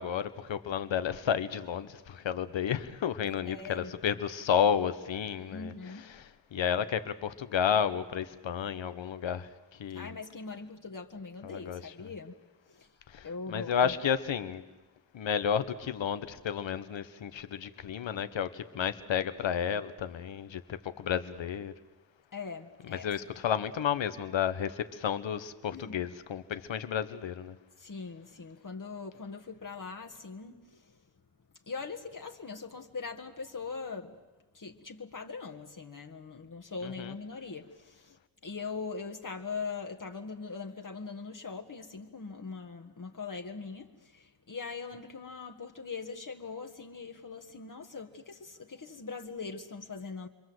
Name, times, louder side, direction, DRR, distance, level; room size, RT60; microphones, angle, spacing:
voice 1, 0.0-10.1 11.4-11.8 13.1-14.6 15.1-21.7 22.8-27.6 36.8-37.1, left 8 dB, 80° left, 1.3 m, -32 dB
voice 2, 3.5-4.0 5.5-6.1 9.9-12.3 12.7-12.9 13.2-14.0 22.3-23.1 25.7-26.0 27.8-31.0 31.7-34.2 34.5-50.3, left 4 dB, 45° left, 1.7 m, -41 dB
29.0 x 22.5 x 7.9 m
cardioid pair, 60°, 44 cm